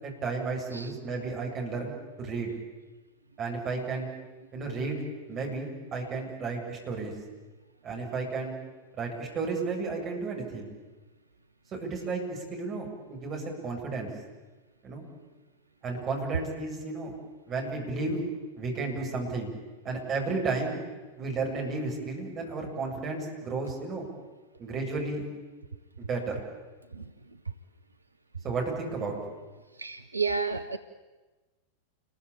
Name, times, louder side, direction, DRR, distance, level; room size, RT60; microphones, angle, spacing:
voice 1, 0.0-2.5 3.4-4.1 4.5-7.1 7.8-8.6 8.9-10.7 11.7-14.1 14.8-15.1 15.8-17.2 17.5-18.2 18.6-19.5 19.8-20.8 21.2-24.1 24.6-25.2 26.0-26.4 28.4-29.2, right 3 dB, 30° right, 0 dB, 7.9 m, -33 dB
voice 2, 29.7-30.8, right 4 dB, 80° right, 9 dB, 0.9 m, -32 dB
29.0 x 22.5 x 8.9 m, 1.2 s
figure-of-eight pair, 90°, 0 cm